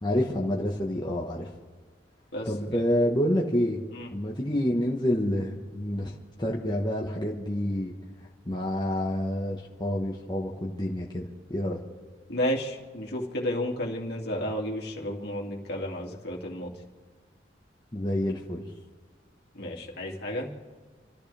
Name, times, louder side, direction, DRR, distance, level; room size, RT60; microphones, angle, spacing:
voice 1, 0.0-1.5 2.4-3.8 4.1-7.9 8.5-11.8 17.9-18.6, left 1 dB, 25° left, -3 dB, 1.4 m, -28 dB
voice 2, 2.3-2.8 3.9-4.1 12.3-16.7 19.5-20.5, equal, 60° left, -1 dB, 2.6 m, -32 dB
28.5 x 13.5 x 3.5 m, 1.5 s
head